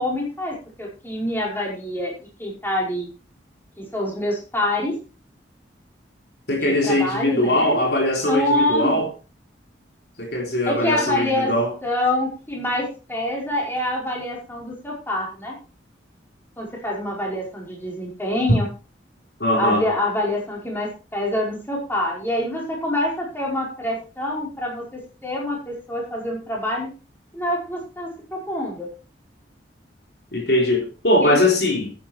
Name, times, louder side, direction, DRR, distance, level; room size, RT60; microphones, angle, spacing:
voice 1, 0.0-2.1 2.4-3.1 3.8-4.9 6.6-7.9 8.2-9.0 10.6-11.5 11.8-15.5 16.6-18.7 19.6-26.9 27.3-28.9 31.2-31.4, left 1 dB, 10° left, 4.9 m, -26 dB
voice 2, 6.5-9.1 10.2-11.7 19.4-19.8 30.3-31.9, left 1 dB, 60° left, 3.6 m, -21 dB
11.5 x 9.9 x 4.4 m
head